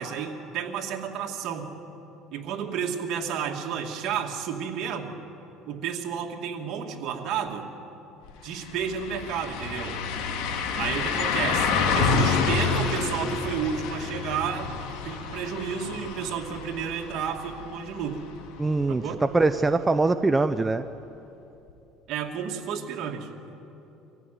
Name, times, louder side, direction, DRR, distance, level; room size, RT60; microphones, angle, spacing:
voice 1, 0.0-1.7 2.3-5.2 5.7-7.7 8.4-10.0 10.8-14.7 15.0-18.2 18.9-19.2 22.1-23.3, right 7 dB, 60° right, 2 dB, 2.4 m, -31 dB
sound 1, 8.2-8.3 8.7-18.4 18.8-18.9 21.7-21.8, left 5 dB, 75° left, 2.5 m, -28 dB
voice 2, 18.6-20.9, right 3 dB, 15° right, 9 dB, 0.6 m, -23 dB
25.5 x 15.5 x 9.4 m, 2.9 s
cardioid pair, 125°, 0 cm